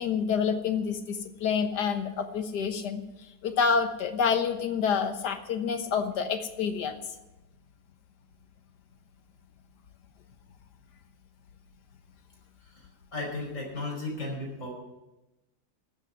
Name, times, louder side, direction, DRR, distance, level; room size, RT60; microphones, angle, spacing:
voice 1, 0.0-3.0 3.4-7.0, left 6 dB, 70° left, 7 dB, 1.8 m, -28 dB
voice 2, 13.1-14.7, left 2 dB, 45° left, -1 dB, 5.2 m, -35 dB
13.0 x 7.7 x 9.2 m, 0.98 s
omnidirectional pair, 1.8 m